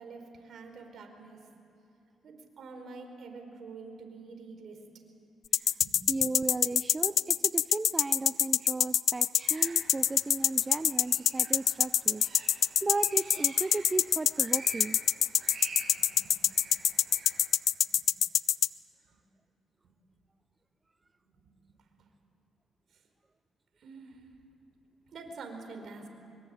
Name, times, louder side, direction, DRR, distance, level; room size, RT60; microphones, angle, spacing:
voice 1, 0.0-1.4 2.2-4.8 5.8-5.9 16.2-16.3 17.7-18.1 19.0-19.2 21.3-21.5 22.0-22.1 23.8-24.3 25.1-26.1, right 4 dB, 60° right, 4 dB, 4.8 m, -46 dB
sound 1, 5.5-18.7, left 10 dB, 65° left, 0.5 m, -24 dB
voice 2, 6.1-15.0, right 3 dB, 20° right, 12 dB, 0.5 m, -35 dB
sound 2, 9.4-17.5, right 3 dB, 40° right, 6.6 m, -48 dB
24.5 x 22.5 x 9.1 m, 2.9 s
cardioid pair, 90°, 0 cm